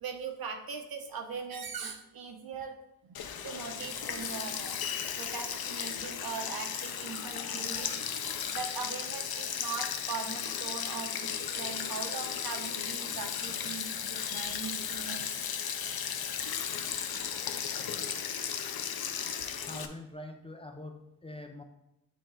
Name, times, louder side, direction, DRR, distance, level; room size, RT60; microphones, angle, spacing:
voice 1, 0.0-2.8 3.0-4.8 5.2-7.9 8.5-15.2, right 5 dB, 80° right, 5 dB, 0.9 m, -40 dB
Sink (filling or washing), 3.1-19.9, left 8 dB, 85° left, 0.6 m, -35 dB
voice 2, 19.6-21.6, left 1 dB, 15° left, 4 dB, 0.5 m, -44 dB
8.9 x 3.1 x 3.8 m, 0.89 s
wide cardioid pair, 155°, 36 cm